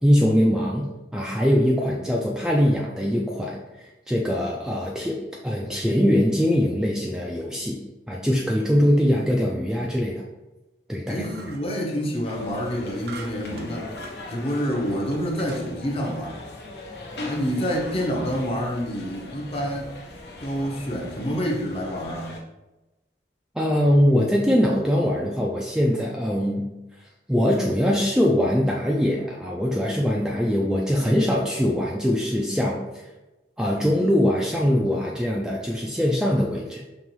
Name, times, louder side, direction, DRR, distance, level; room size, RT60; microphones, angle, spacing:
voice 1, 0.0-7.8 8.1-10.2 10.9-11.2 23.6-26.7 27.3-32.8 33.6-36.8, equal, 5° right, -2 dB, 0.3 m, -22 dB
voice 2, 11.1-13.9 14.3-16.4 17.2-19.9 20.4-22.4, equal, 35° left, 0 dB, 0.8 m, -27 dB
sound 1, 11.2-11.7 13.1-14.2 14.8-14.9 15.4-15.7, right 3 dB, 65° right, 0.5 m, -42 dB
sound 2, 12.2-22.4, left 2 dB, 75° left, 0.8 m, -39 dB
5.4 x 3.0 x 3.0 m, 1.0 s
head